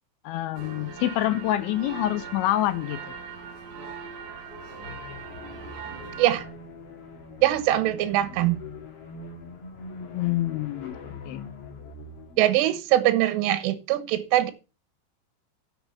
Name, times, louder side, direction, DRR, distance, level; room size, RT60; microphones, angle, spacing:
voice 1, 0.2-3.0 10.1-11.0 11.3-11.4, left 14 dB, 80° left, 2.7 m, -26 dB
sound 1, 0.6-6.5, right 5 dB, 60° right, 5.1 m, -40 dB
sound 2, 4.8-12.5, left 3 dB, 45° left, 2.0 m, -42 dB
voice 2, 7.4-8.6 12.4-14.5, right 14 dB, 80° right, 3.6 m, -22 dB
11.0 x 7.4 x 7.2 m
omnidirectional pair, 5.9 m